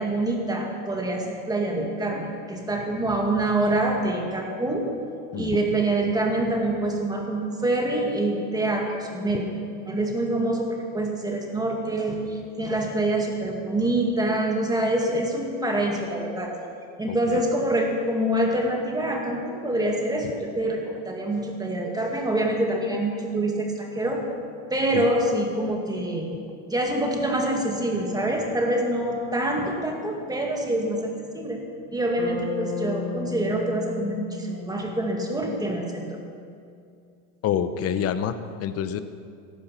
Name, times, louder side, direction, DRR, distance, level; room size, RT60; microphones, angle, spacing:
voice 1, 0.0-4.9 5.4-9.4 9.9-16.5 17.0-24.2 24.7-26.3 26.7-31.6 31.9-36.0, right 1 dB, 10° right, 1 dB, 2.0 m, -26 dB
voice 2, 17.1-17.4 24.9-25.1 37.4-39.0, left 8 dB, 35° left, 11 dB, 0.8 m, -27 dB
Bass guitar, 32.2-36.3, left 6 dB, 55° left, 2.7 m, -35 dB
15.0 x 12.0 x 5.7 m, 2.4 s
supercardioid pair, 130°, 45 cm